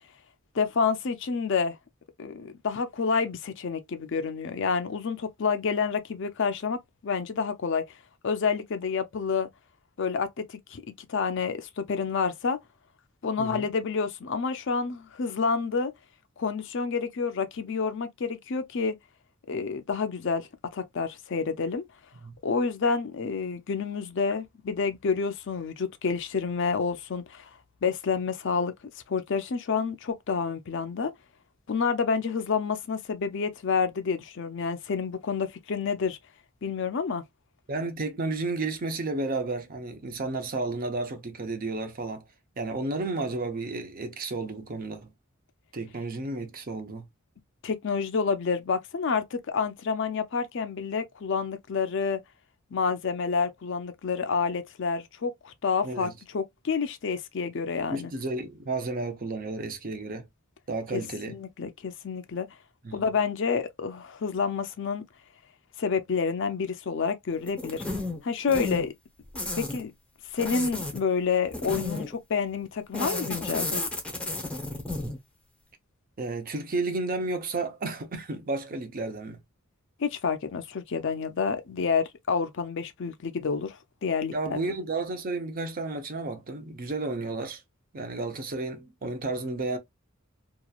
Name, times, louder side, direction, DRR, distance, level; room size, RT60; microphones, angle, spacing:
voice 1, 0.5-1.8 2.2-7.8 8.2-9.5 10.0-10.8 11.1-12.6 13.2-15.9 16.4-19.0 19.5-21.8 22.4-27.5 27.8-28.7 29.1-31.1 31.7-36.2 36.6-37.2 47.6-52.2 52.7-58.1 60.9-61.0 61.3-62.5 62.9-65.0 65.8-67.8 68.2-68.9 69.6-69.9 70.3-73.8 80.0-84.6, left 5 dB, 60° left, 0.5 m, -29 dB
voice 2, 37.7-42.2 42.6-45.1 45.7-47.0 55.8-56.1 57.9-60.3 60.7-61.4 62.8-63.0 76.2-79.4 84.3-87.6 87.9-89.8, right 3 dB, 40° right, 0.6 m, -32 dB
sound 1, 67.5-68.2 68.5-68.9 69.3-69.8 70.4-71.0 71.5-72.1 72.9-75.2, left 2 dB, 5° left, 0.7 m, -32 dB
2.9 x 2.3 x 2.3 m
head